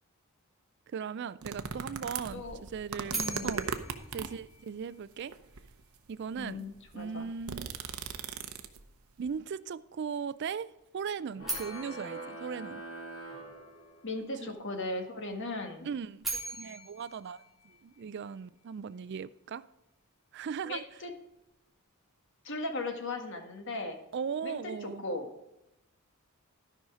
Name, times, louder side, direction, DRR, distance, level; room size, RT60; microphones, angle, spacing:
voice 1, 0.9-3.7 4.1-5.3 6.1-6.6 6.9-7.7 9.2-12.8 14.4-14.5 15.8-19.6 20.3-20.8 24.1-25.0, right 6 dB, 50° right, 0.3 m, -38 dB
sound 1, 1.4-4.5 5.3-5.8 6.4-6.5 6.7-8.9 9.3-9.4, right 5 dB, 75° right, 0.8 m, -38 dB
voice 2, 3.1-3.6 6.4-7.3 14.0-15.9 20.6-21.1 22.4-24.0 24.4-25.3, left 2 dB, 55° left, 1.5 m, -37 dB
sound 2, 3.1-5.2 11.4-13.6 15.9-18.4, right 2 dB, ahead, 2.3 m, -41 dB
sound 3, 11.3-14.2, right 2 dB, 85° left, 3.3 m, -44 dB
13.0 x 5.5 x 4.9 m
head